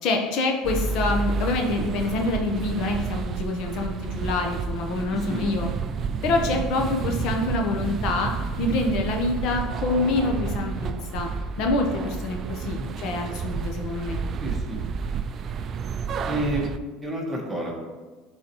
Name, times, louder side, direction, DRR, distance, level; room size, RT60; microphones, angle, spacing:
voice 1, 0.0-5.7 6.2-8.3 8.6-11.3 11.6-14.2, left 2 dB, 60° left, 2 dB, 0.9 m, -26 dB
sound 1, 0.6-16.8, right 5 dB, 40° right, 0.4 m, -30 dB
voice 2, 5.1-5.5 12.6-12.9 14.4-14.8 16.3-16.7 17.0-17.7, right 1 dB, 10° right, -2 dB, 1.5 m, -30 dB
10.5 x 4.1 x 3.0 m, 1.3 s
cardioid pair, 130°, 0 cm